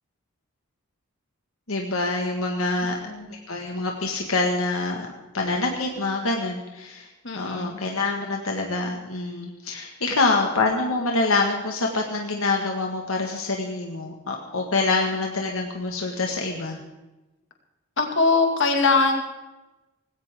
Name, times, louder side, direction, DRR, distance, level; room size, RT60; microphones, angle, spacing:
voice 1, 1.7-3.0 3.3-5.1 5.3-7.1 7.3-16.8, left 3 dB, 75° left, 1 dB, 1.8 m, -26 dB
voice 2, 2.8-3.3 7.2-7.8 18.0-19.2, left 3 dB, 60° left, 3 dB, 2.3 m, -22 dB
19.5 x 16.5 x 3.7 m, 1.0 s
head